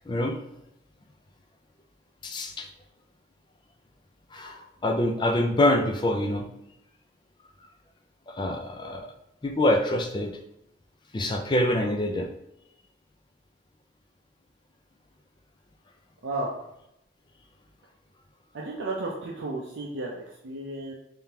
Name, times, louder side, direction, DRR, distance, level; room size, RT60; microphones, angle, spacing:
voice 1, 0.1-0.4 2.2-2.7 4.3-6.5 8.3-9.1 9.4-10.3 11.1-12.3, left 1 dB, 20° left, 4 dB, 0.4 m, -25 dB
voice 2, 18.5-20.9, right 2 dB, 65° right, -2 dB, 0.5 m, -33 dB
3.5 x 3.4 x 2.8 m, 0.83 s
head